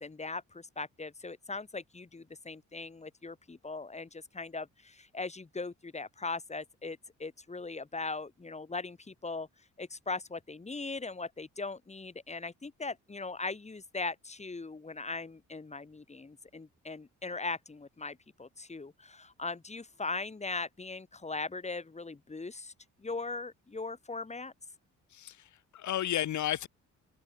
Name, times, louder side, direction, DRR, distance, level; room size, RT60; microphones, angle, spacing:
voice 1, 0.0-9.5 9.8-22.7 23.0-24.5, left 3 dB, 20° left, 2.8 m, -39 dB
voice 2, 25.1-26.7, left 12 dB, 70° left, 3.0 m, -33 dB
cardioid pair, 90°, 30 cm